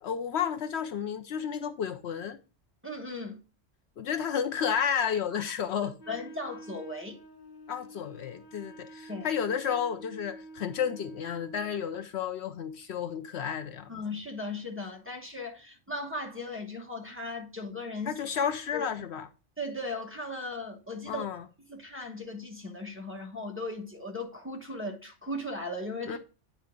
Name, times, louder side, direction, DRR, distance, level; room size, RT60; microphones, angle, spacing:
voice 1, 0.0-2.4 4.0-5.9 7.7-13.9 18.1-19.3 21.1-21.4 26.1-26.2, left 8 dB, 70° left, 0.8 m, -32 dB
voice 2, 2.8-3.4 5.3-5.4 5.8-7.2 9.1-9.3 13.9-18.2 18.7-18.9 19.6-21.2 21.7-26.2, left 2 dB, 10° right, 1.1 m, -37 dB
Wind instrument woodwind instrument, 6.0-11.8, equal, 40° left, 1.2 m, -48 dB
9.3 x 4.6 x 3.6 m
omnidirectional pair, 1.2 m